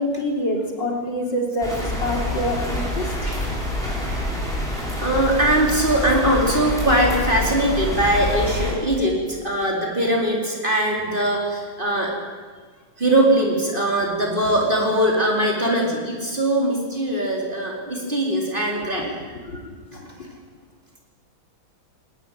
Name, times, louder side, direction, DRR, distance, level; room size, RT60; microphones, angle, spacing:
voice 1, 0.0-1.7 2.0-3.1 19.5-20.1, left 1 dB, 60° left, 0 dB, 4.3 m, -26 dB
sound 1, 1.6-8.7, equal, ahead, 7.1 m, -26 dB
voice 2, 5.0-12.1 13.0-19.2, right 1 dB, 25° right, -1 dB, 4.4 m, -21 dB
20.5 x 19.5 x 9.1 m, 1.5 s
omnidirectional pair, 2.2 m